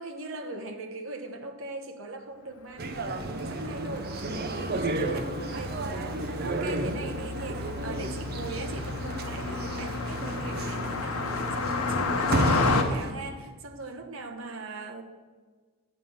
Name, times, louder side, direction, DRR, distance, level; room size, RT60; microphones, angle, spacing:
voice 1, 0.0-15.0, right 2 dB, 60° right, 4 dB, 1.0 m, -40 dB
Car passing by, 2.7-12.8, left 4 dB, 80° left, 0.9 m, -32 dB
sound 1, 2.8-13.1, right 2 dB, 45° right, 0.7 m, -32 dB
8.3 x 5.5 x 7.2 m, 1.5 s
head